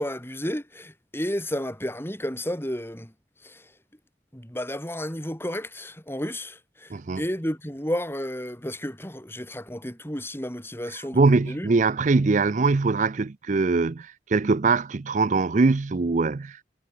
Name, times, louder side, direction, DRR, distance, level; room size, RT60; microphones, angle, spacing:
voice 1, 0.0-3.1 3.4-3.7 4.3-11.7, equal, 15° left, 6.0 m, -32 dB
voice 2, 6.9-7.2 10.9-16.6, right 3 dB, 40° right, 0.5 m, -22 dB
head